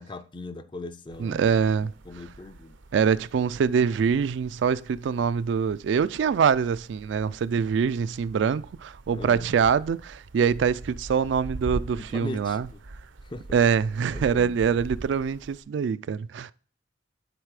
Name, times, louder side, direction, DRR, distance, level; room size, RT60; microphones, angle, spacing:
voice 1, 0.0-1.5 1.8-2.8 9.1-9.5 12.0-12.8 13.2-13.5 14.1-14.8, left 2 dB, 25° left, 0.5 m, -40 dB
sound 1, 1.1-15.6, right 2 dB, 85° right, 0.7 m, -43 dB
voice 2, 1.2-1.9 2.9-12.7 13.5-16.5, right 6 dB, 65° right, 0.3 m, -24 dB
9.9 x 4.1 x 4.7 m
head